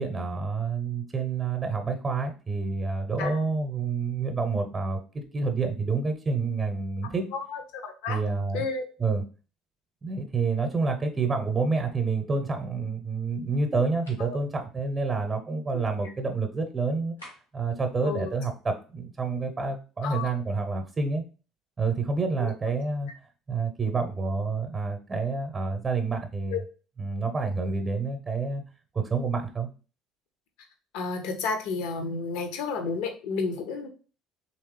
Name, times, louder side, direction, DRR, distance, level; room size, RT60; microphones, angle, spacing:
voice 1, 0.0-7.2 8.1-8.6 9.0-9.2 10.0-17.1 17.5-21.2 21.8-23.1 23.5-26.6 27.0-28.6 28.9-29.7, right 4 dB, 25° right, 6 dB, 0.8 m, -28 dB
voice 2, 7.3-8.2 8.5-8.9 14.2-14.4 15.7-15.8 18.0-18.3 20.0-20.3 22.4-22.5 26.5-26.6 30.9-33.9, left 4 dB, 60° left, 6 dB, 0.7 m, -31 dB
sound 1, 14.1-14.3 17.2-17.7, equal, 90° left, 1.7 m, -48 dB
3.5 x 3.0 x 3.2 m, 0.36 s
figure-of-eight pair, 55°, 0 cm